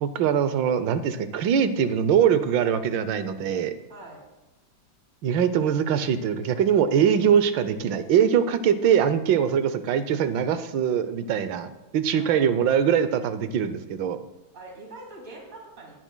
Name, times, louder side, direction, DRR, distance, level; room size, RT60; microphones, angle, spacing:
voice 1, 0.0-3.7 5.2-14.2, right 8 dB, 85° right, 12 dB, 1.4 m, -22 dB
voice 2, 3.9-4.2 12.1-13.0 14.5-15.9, right 2 dB, 35° right, -2 dB, 2.7 m, -44 dB
19.0 x 10.0 x 2.2 m, 1.0 s
omnidirectional pair, 2.0 m